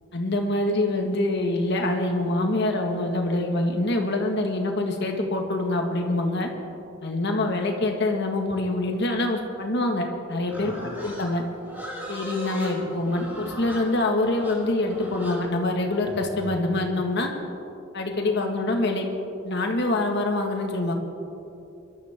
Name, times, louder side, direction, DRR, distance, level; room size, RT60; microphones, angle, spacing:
voice 1, 0.1-6.5 7.0-11.4 12.1-17.3 17.9-19.1 19.4-20.9, left 2 dB, 60° left, 2 dB, 1.8 m, -25 dB
Livestock farm animals working animals, 10.5-16.5, equal, 10° right, 3.4 m, -38 dB
24.5 x 12.5 x 3.7 m, 2.8 s
head